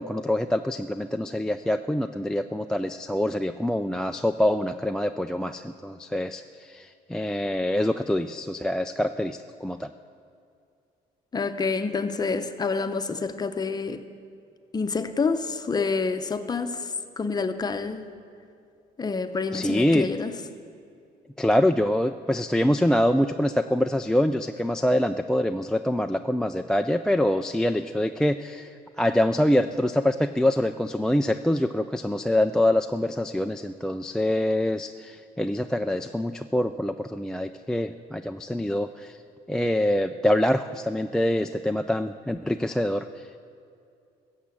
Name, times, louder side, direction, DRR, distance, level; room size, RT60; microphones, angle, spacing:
voice 1, 0.0-9.9 19.5-20.1 21.4-39.2 39.5-43.4, left 1 dB, 5° left, 10 dB, 0.3 m, -25 dB
voice 2, 11.3-14.0 14.7-16.9 17.2-18.0 19.0-20.3, left 4 dB, 25° left, 8 dB, 0.8 m, -27 dB
14.5 x 7.4 x 8.4 m, 2.5 s
cardioid pair, 110°, 17 cm